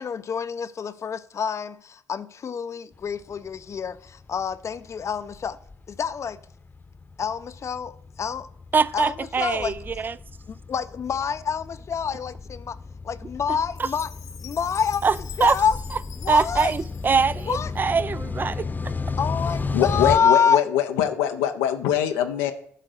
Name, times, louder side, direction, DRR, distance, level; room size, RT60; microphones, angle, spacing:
voice 1, 0.0-5.6 5.9-6.4 7.2-8.5 8.9-9.7 10.5-12.8 13.0-14.1 14.4-15.1 15.4-15.8 16.2-16.7 17.5-17.9 19.1-20.6, left 7 dB, 50° left, 0.5 m, -27 dB
sound 1, 3.2-20.2, left 4 dB, 30° left, 0.9 m, -34 dB
voice 2, 8.7-10.1 13.8-13.9 15.0-15.1 15.4-15.6 16.3-18.7, right 5 dB, 30° right, 0.4 m, -22 dB
Chime, 13.7-17.9, left 9 dB, 70° left, 1.1 m, -45 dB
voice 3, 19.7-22.5, left 10 dB, 90° left, 0.6 m, -23 dB
10.5 x 3.8 x 6.3 m
hypercardioid pair, 50°, 6 cm